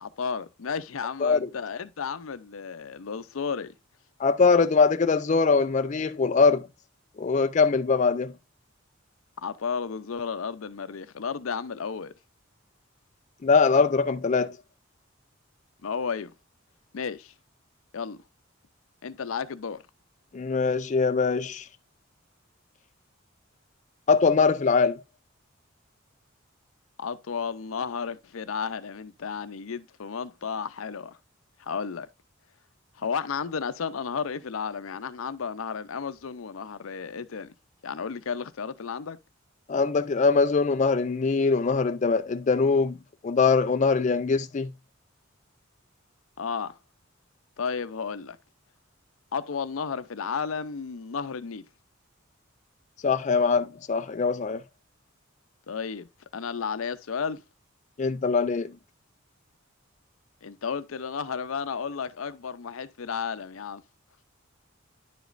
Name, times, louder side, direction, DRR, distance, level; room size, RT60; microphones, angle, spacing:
voice 1, 0.0-3.7 9.4-12.1 15.8-16.3 16.9-17.3 17.9-18.2 19.0-19.8 27.0-31.2 31.6-32.1 33.0-37.5 37.8-39.2 46.4-46.8 47.6-48.4 49.3-51.6 55.7-56.1 56.3-57.4 60.4-63.8, left 6 dB, 90° left, 0.6 m, -33 dB
voice 2, 4.2-6.7 7.2-8.3 13.4-14.6 20.3-21.7 24.1-25.0 39.7-43.0 43.2-44.7 53.0-54.6 58.0-58.7, left 4 dB, 35° left, 0.4 m, -22 dB
10.0 x 5.1 x 2.5 m
head